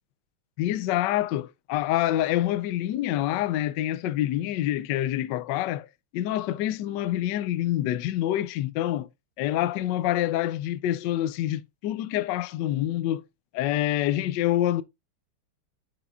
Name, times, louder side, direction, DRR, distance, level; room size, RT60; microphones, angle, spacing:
voice 1, 0.6-5.9 6.1-9.1 9.4-13.2 13.5-14.8, left 13 dB, 80° left, 1.0 m, -26 dB
10.0 x 5.0 x 2.4 m
omnidirectional pair, 2.4 m